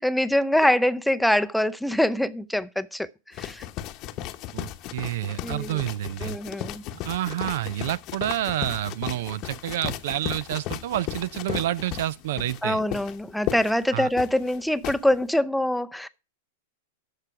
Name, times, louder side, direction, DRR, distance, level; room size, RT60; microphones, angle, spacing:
voice 1, 0.0-3.1 3.3-3.7 5.4-5.8 6.2-6.8 12.6-16.1, left 1 dB, ahead, 0.5 m, -24 dB
sound 1, 3.3-15.0, left 12 dB, 40° left, 0.9 m, -35 dB
voice 2, 4.5-6.4 7.0-12.8 13.9-14.1, right 13 dB, 65° right, 0.4 m, -29 dB
13.0 x 4.8 x 5.8 m
hypercardioid pair, 125°, 0 cm